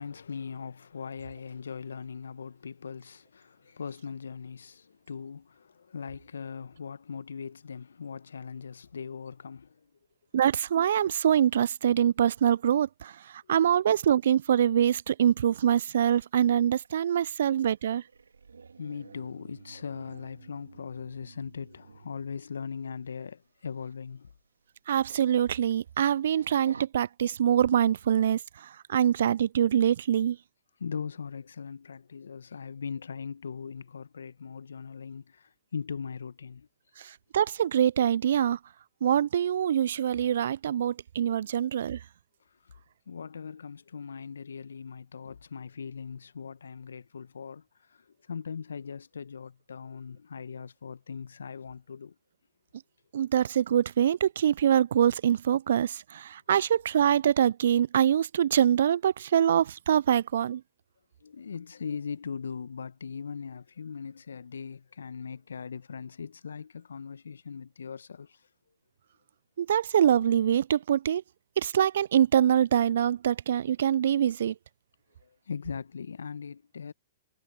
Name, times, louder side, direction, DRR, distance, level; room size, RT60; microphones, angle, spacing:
voice 1, 0.0-9.9 18.8-24.3 30.8-36.7 41.4-41.5 42.6-42.7 43.1-52.1 61.2-68.5 75.2-76.9, left 6 dB, 75° left, 1.4 m, -40 dB
voice 2, 10.3-13.1 13.5-18.0 24.9-28.4 28.9-30.4 37.3-38.6 39.0-42.0 53.1-60.6 69.6-71.2 71.6-74.5, right 9 dB, 60° right, 0.4 m, -24 dB
sound 1, 15.6-22.5 23.6-23.9 24.3-24.4 24.9-25.0 25.2-25.9 26.2-26.9, right 5 dB, 80° right, 3.2 m, -52 dB
figure-of-eight pair, 115°, 0 cm